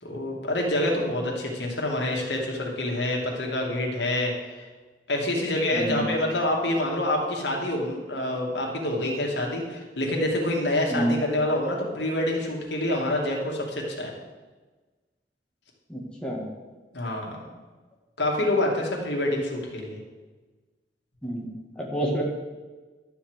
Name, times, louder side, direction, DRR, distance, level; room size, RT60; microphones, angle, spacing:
voice 1, 0.0-4.7 5.1-14.2 16.9-17.4 18.2-20.0, left 1 dB, 85° left, -1 dB, 2.5 m, -27 dB
voice 2, 5.7-6.0 10.9-11.2 15.9-16.5 21.2-21.5 21.8-22.2, right 1 dB, 5° left, -3 dB, 2.0 m, -28 dB
12.0 x 5.9 x 8.1 m, 1.3 s
head